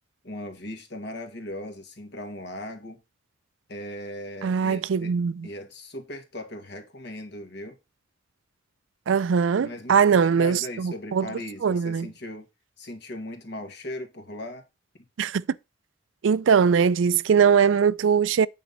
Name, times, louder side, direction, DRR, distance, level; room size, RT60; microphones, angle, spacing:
voice 1, 0.2-3.0 3.7-5.1 5.4-7.8 9.6-12.5 12.8-14.6, left 1 dB, 60° left, 1.9 m, -38 dB
voice 2, 4.4-5.5 9.1-11.3 11.6-12.1 15.2-15.4 16.2-18.5, right 6 dB, 80° right, 0.4 m, -21 dB
8.6 x 4.2 x 5.4 m
head